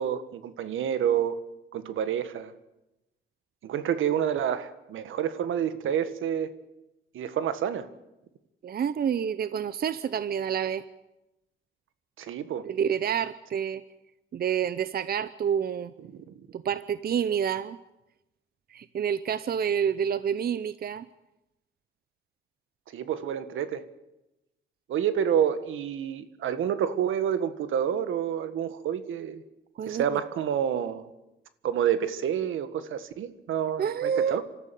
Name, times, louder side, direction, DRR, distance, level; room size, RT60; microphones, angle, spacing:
voice 1, 0.0-1.4 1.7-2.5 3.6-6.5 7.1-7.9 12.2-12.7 16.1-16.2 22.9-23.8 24.9-29.4 29.8-31.1 31.6-34.4, right 9 dB, 80° right, 1.6 m, -28 dB
voice 2, 8.6-10.8 12.6-13.8 14.3-15.9 16.5-17.8 18.7-21.1 29.8-30.2 33.8-34.4, right 8 dB, 50° right, 0.8 m, -28 dB
26.0 x 13.5 x 9.2 m
cardioid pair, 95°, 20 cm